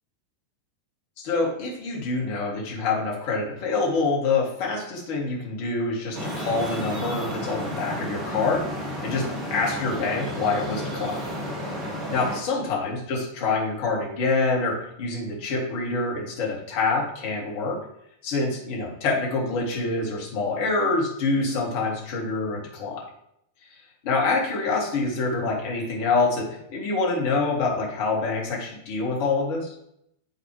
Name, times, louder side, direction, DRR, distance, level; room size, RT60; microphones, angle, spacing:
voice 1, 1.2-9.2 9.5-11.2 12.1-17.8 18.2-23.0 24.0-29.7, left 3 dB, 50° left, -2 dB, 2.5 m, -26 dB
Traffic noise roadway noise, 6.1-12.4, equal, 25° right, 1.7 m, -32 dB
11.0 x 3.9 x 3.4 m, 0.76 s
figure-of-eight pair, 90°, 0 cm